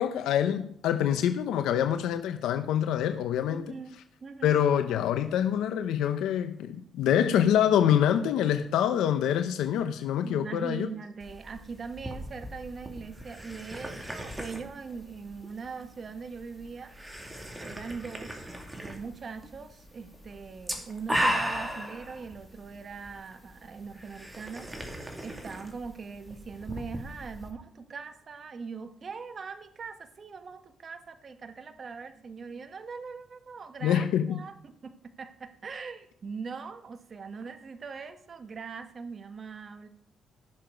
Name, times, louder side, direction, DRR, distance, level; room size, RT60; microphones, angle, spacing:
voice 1, 0.0-3.7 4.4-10.9 33.8-34.4, left 9 dB, 85° left, 0.8 m, -26 dB
voice 2, 3.5-4.6 10.2-18.5 18.8-39.9, right 5 dB, 40° right, 1.2 m, -41 dB
sound 1, 11.2-27.5, equal, 10° right, 2.5 m, -37 dB
15.0 x 6.8 x 5.2 m
cardioid pair, 90°, 0 cm